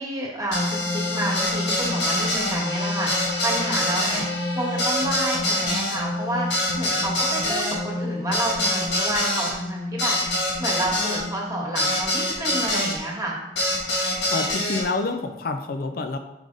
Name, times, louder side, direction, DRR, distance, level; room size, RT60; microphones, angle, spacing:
voice 1, 0.0-4.3 4.5-10.2 10.6-13.4, right 1 dB, 20° right, -3 dB, 1.4 m, -29 dB
sound 1, 0.5-13.0 13.6-14.8, left 1 dB, 85° left, 1.5 m, -25 dB
voice 2, 14.3-16.2, left 3 dB, 55° left, 7 dB, 0.5 m, -27 dB
5.1 x 4.8 x 3.9 m, 0.93 s
head